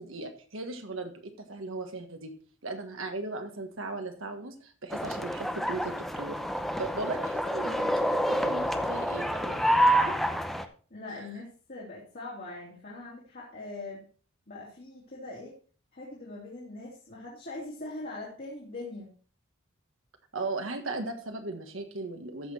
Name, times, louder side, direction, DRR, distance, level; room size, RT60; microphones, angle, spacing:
voice 1, 0.0-2.3 2.6-6.4 6.8-7.9 8.3-9.6 11.2-11.3 20.3-22.5, right 3 dB, 70° right, 5 dB, 1.5 m, -37 dB
sound 1, 4.9-10.6, equal, ahead, 0.7 m, -28 dB
voice 2, 9.9-10.4 10.9-14.1 14.5-15.5 15.9-19.1, left 2 dB, 45° left, -5 dB, 2.8 m, -42 dB
14.0 x 6.0 x 4.3 m, 0.40 s
head